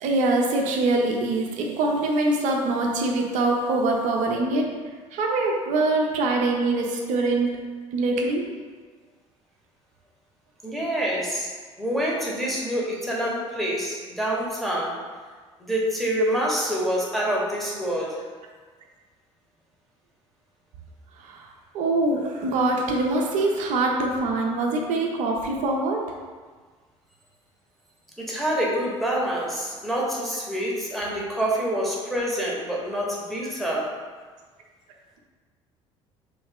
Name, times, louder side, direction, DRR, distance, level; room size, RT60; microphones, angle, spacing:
voice 1, 0.0-4.7 5.1-7.5 7.9-8.4 21.2-21.5 21.7-26.0 33.4-33.5, right 2 dB, 50° right, 0 dB, 0.5 m, -24 dB
voice 2, 10.6-11.5 11.8-14.9 15.6-18.2 28.2-33.9, equal, ahead, -5 dB, 1.0 m, -26 dB
3.2 x 3.1 x 3.4 m, 1.5 s
figure-of-eight pair, 55°, 16 cm